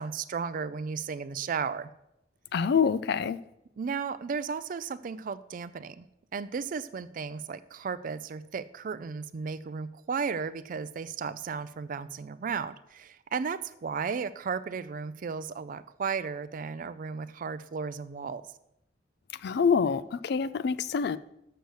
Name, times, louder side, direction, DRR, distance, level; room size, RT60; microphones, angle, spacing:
voice 1, 0.0-1.9 3.8-6.1 6.3-18.4, right 5 dB, 45° right, 0.4 m, -34 dB
voice 2, 2.5-3.4 19.3-21.2, left 6 dB, 60° left, 0.4 m, -26 dB
6.8 x 6.4 x 6.3 m
head